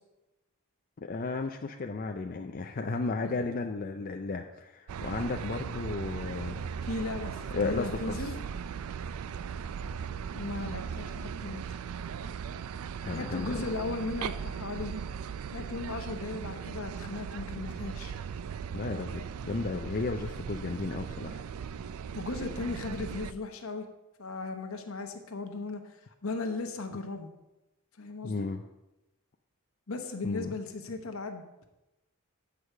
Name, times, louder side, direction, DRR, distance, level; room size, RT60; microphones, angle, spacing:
voice 1, 1.0-6.6 7.5-8.3 13.0-13.7 18.7-21.4 28.2-28.6 30.2-30.5, left 3 dB, 40° left, 4 dB, 0.4 m, -34 dB
sound 1, 4.9-23.3, right 7 dB, 75° right, 0.4 m, -38 dB
voice 2, 6.8-8.4 10.3-11.8 13.1-14.9 15.5-18.1 22.1-23.9 24.2-27.3 28.0-28.5 29.9-31.4, left 3 dB, 70° left, 6 dB, 1.0 m, -37 dB
8.4 x 4.7 x 6.6 m, 0.98 s
head